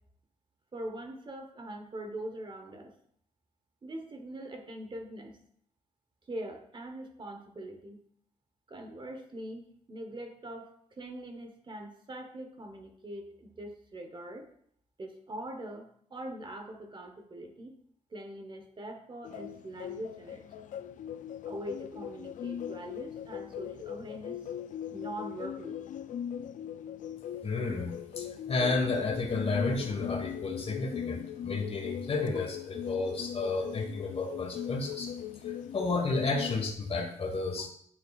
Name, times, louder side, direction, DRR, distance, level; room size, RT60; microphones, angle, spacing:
voice 1, 0.7-2.9 3.8-5.4 6.3-8.0 8.7-14.5 15.0-17.7 18.1-20.7 21.4-24.4 24.9-25.8 36.1-36.2, right 1 dB, 40° right, 5 dB, 1.1 m, -42 dB
sound 1, 19.2-36.7, left 9 dB, 80° left, 0.4 m, -40 dB
voice 2, 27.4-35.1 35.7-37.7, left 3 dB, 50° left, 3 dB, 1.5 m, -32 dB
9.6 x 6.8 x 2.5 m, 0.65 s
cardioid pair, 100°, 13 cm